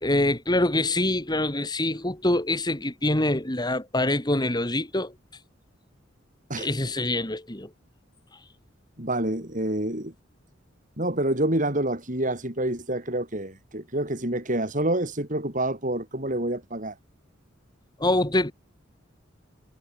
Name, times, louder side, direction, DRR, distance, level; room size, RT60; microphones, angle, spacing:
voice 1, 0.0-5.1 6.6-7.7 18.0-18.5, left 1 dB, 20° left, 2.8 m, -25 dB
voice 2, 9.0-10.1 11.0-16.9, right 1 dB, 40° right, 7.2 m, -27 dB
head